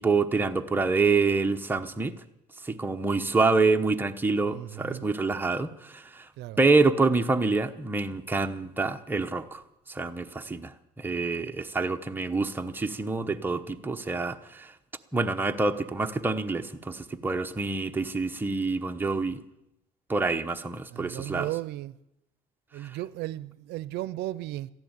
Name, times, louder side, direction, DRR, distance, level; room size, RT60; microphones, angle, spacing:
voice 1, 0.0-2.1 2.6-6.3 6.6-9.6 9.9-14.7 15.1-19.4 20.1-21.5 22.8-22.9, right 3 dB, 10° right, 1.0 m, -26 dB
voice 2, 4.5-5.1 6.4-6.6 20.9-21.9 22.7-24.7, right 15 dB, 80° right, 0.5 m, -35 dB
14.5 x 11.0 x 8.9 m
cardioid pair, 110°, 17 cm